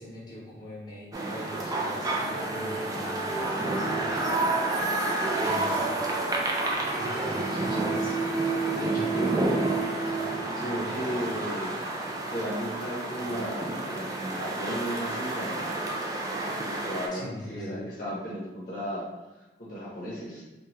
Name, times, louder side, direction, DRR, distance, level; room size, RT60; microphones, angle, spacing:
voice 1, 0.0-4.4 5.3-6.1 6.9-8.2 8.8-11.4 17.1-17.9, equal, 25° left, -7 dB, 0.9 m, -41 dB
sound 1, 1.1-17.1, right 2 dB, 20° right, 0.3 m, -29 dB
voice 2, 8.7-9.5 10.6-11.7 12.3-16.0 16.3-19.0 19.4-20.4, equal, 50° left, -7 dB, 0.7 m, -35 dB
2.8 x 2.2 x 3.1 m, 1.1 s
head